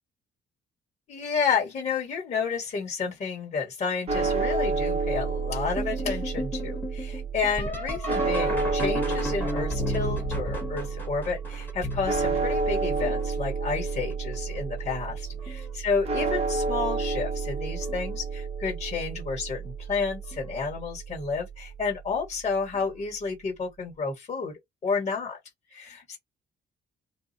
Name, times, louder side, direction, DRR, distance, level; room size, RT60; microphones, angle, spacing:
voice 1, 1.1-25.4 25.7-26.2, left 5 dB, 35° left, 1.4 m, -31 dB
sound 1, 4.1-22.3, right 4 dB, 30° right, 0.6 m, -30 dB
sound 2, 5.8-13.4 14.1-14.6 15.1-15.7 17.0-17.1 17.8-18.1 20.3-20.4 22.7-22.8, left 1 dB, 10° left, 1.0 m, -34 dB
2.5 x 2.0 x 2.6 m
cardioid pair, 175°, 19 cm